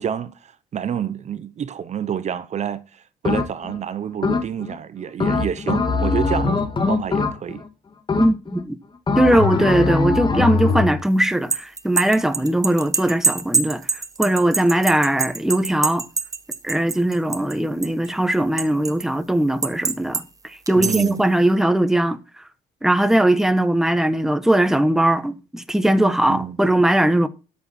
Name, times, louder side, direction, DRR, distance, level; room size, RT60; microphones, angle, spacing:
voice 1, 0.0-6.6 6.9-7.6 20.7-21.2 26.3-26.6, right 9 dB, 45° right, 0.9 m, -28 dB
sound 1, 3.2-3.8 4.2-4.8 5.2-7.7 8.1-8.6 9.1-11.0, left 4 dB, 25° left, 2.4 m, -21 dB
voice 2, 8.2-8.8 9.2-16.1 16.6-22.2 22.8-27.3, right 1 dB, 5° right, 1.2 m, -19 dB
sound 2, 11.2-17.6 17.8-19.0 19.6-20.2 20.7-21.2, right 4 dB, 20° right, 1.2 m, -24 dB
12.5 x 7.4 x 4.4 m
cardioid pair, 110°, 17 cm